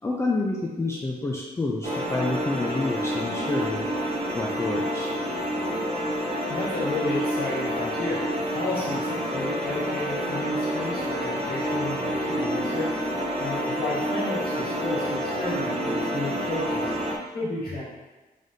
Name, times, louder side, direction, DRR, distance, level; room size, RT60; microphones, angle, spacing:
voice 1, 0.0-3.9 4.3-5.1, left 2 dB, 15° left, -3 dB, 0.3 m, -28 dB
sound 1, 1.8-17.2, equal, 40° right, 0.6 m, -28 dB
voice 2, 6.0-13.0 13.4-16.9 17.3-17.8, left 2 dB, 80° left, -8 dB, 1.4 m, -32 dB
3.7 x 3.3 x 2.7 m, 1.2 s
wide cardioid pair, 115°, 16 cm